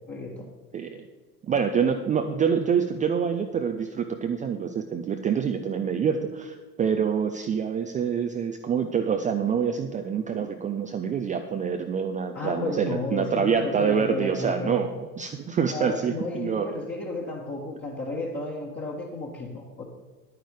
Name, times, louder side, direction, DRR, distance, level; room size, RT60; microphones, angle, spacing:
voice 1, 1.4-16.7, right 7 dB, 15° right, 6 dB, 0.5 m, -26 dB
voice 2, 12.3-14.9 15.7-19.8, left 2 dB, 20° left, -3 dB, 1.7 m, -33 dB
10.5 x 9.5 x 4.8 m, 1.3 s
figure-of-eight pair, 80°, 48 cm